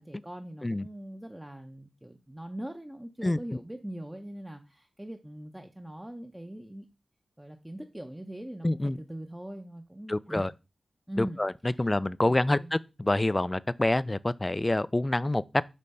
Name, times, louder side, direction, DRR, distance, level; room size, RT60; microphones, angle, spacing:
voice 1, 0.0-6.9 7.4-10.5 11.1-11.4 11.7-11.9 12.2-12.7, right 1 dB, 10° right, 0.7 m, -42 dB
voice 2, 8.6-9.0 10.1-10.5 11.2-11.5 11.8-15.4, left 1 dB, 20° left, 0.3 m, -27 dB
8.3 x 3.3 x 5.4 m
wide cardioid pair, 95°, 0 cm